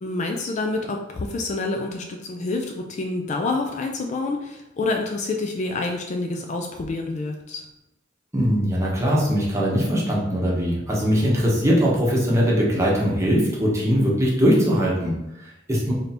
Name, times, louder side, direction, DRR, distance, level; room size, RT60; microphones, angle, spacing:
voice 1, 0.0-7.7, left 3 dB, 40° left, 3 dB, 0.3 m, -27 dB
voice 2, 8.3-15.9, equal, 15° right, -5 dB, 1.0 m, -21 dB
3.3 x 2.7 x 4.2 m, 0.91 s
head